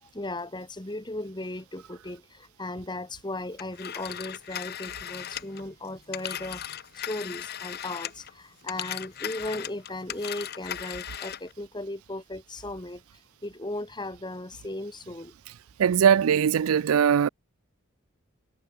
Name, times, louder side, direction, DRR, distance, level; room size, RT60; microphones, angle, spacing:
voice 1, 0.0-15.3, left 2 dB, 20° left, 1.8 m, -37 dB
Telephone, 3.6-8.3 8.6-11.5, left 10 dB, 45° left, 0.9 m, -37 dB
voice 2, 15.8-17.3, right 8 dB, 85° right, 0.4 m, -20 dB
head